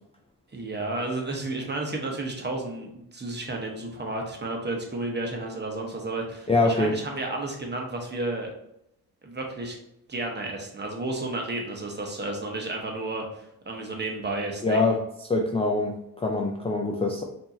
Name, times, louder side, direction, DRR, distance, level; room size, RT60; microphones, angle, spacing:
voice 1, 0.5-8.5 9.2-9.8 10.1-14.9, right 2 dB, 25° right, 1 dB, 0.9 m, -32 dB
voice 2, 6.5-6.9 14.6-15.0 15.3-17.2, left 3 dB, 15° left, 1 dB, 0.3 m, -24 dB
4.4 x 2.7 x 2.7 m, 0.81 s
cardioid pair, 85°, 40 cm